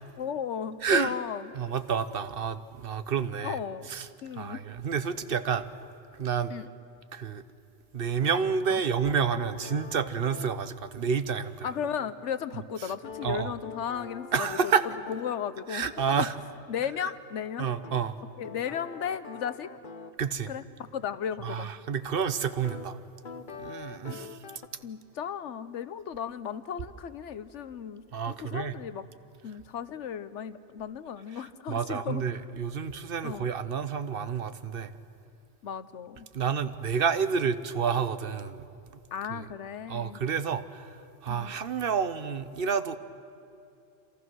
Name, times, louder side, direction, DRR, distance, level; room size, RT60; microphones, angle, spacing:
voice 1, 0.2-1.5 3.4-3.9 4.2-4.6 6.5-6.7 8.7-8.8 11.6-16.3 16.7-17.7 18.4-19.7 20.5-21.7 24.1-24.3 24.8-29.0 29.4-32.4 33.2-33.5 35.6-36.3 39.1-40.2 41.3-41.5, left 8 dB, 85° left, 13 dB, 1.2 m, -35 dB
voice 2, 0.8-1.2 1.5-3.6 3.9-4.1 4.4-5.7 6.2-6.5 7.1-7.4 7.9-11.7 13.2-13.5 14.3-14.8 15.7-16.3 17.6-18.2 20.2-20.5 21.4-23.0 23.5-24.4 28.1-28.7 31.7-34.9 36.3-38.6 39.3-39.4 39.9-40.9 41.2-43.0, right 6 dB, 55° right, 13 dB, 1.0 m, -29 dB
sound 1, 8.2-10.6 13.0-15.4 17.8-20.2 22.6-22.9 23.2-24.7, left 5 dB, 45° left, 1.1 m, -44 dB
27.5 x 27.0 x 6.3 m, 2.6 s
omnidirectional pair, 1.2 m